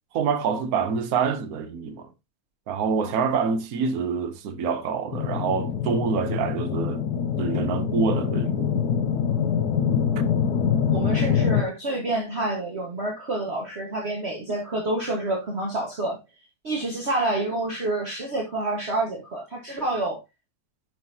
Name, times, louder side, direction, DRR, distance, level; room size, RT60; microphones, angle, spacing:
voice 1, 0.1-2.1 2.7-7.0 7.4-8.8, right 5 dB, 70° right, 1.3 m, -26 dB
sound 1, 5.1-11.6, left 7 dB, 75° left, 1.4 m, -24 dB
voice 2, 10.9-16.2 16.6-20.2, right 2 dB, 40° right, 1.9 m, -28 dB
10.5 x 5.6 x 2.8 m
omnidirectional pair, 1.7 m